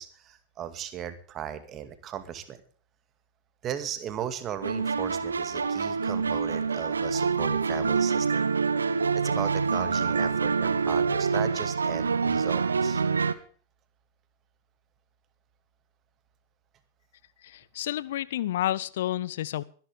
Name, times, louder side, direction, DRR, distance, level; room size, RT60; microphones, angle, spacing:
voice 1, 0.0-2.6 3.6-8.4 9.2-13.0, right 9 dB, 30° right, 10 dB, 2.2 m, -37 dB
sound 1, 4.6-13.3, right 5 dB, 75° right, 1.0 m, -26 dB
voice 2, 17.4-19.6, left 13 dB, 55° left, 20 dB, 0.7 m, -30 dB
23.5 x 11.0 x 3.6 m, 0.42 s
figure-of-eight pair, 90°, 0 cm